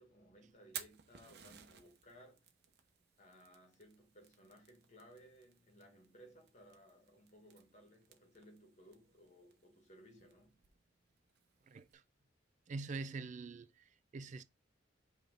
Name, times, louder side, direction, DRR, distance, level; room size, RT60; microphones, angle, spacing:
voice 1, 0.0-2.5 3.2-10.6, equal, 40° left, 1.8 m, -61 dB
Fire, 0.5-11.9, right 9 dB, 60° right, 1.0 m, -57 dB
voice 2, 11.7-12.0 12.7-14.4, right 3 dB, 40° right, 0.4 m, -45 dB
5.6 x 3.4 x 5.3 m
head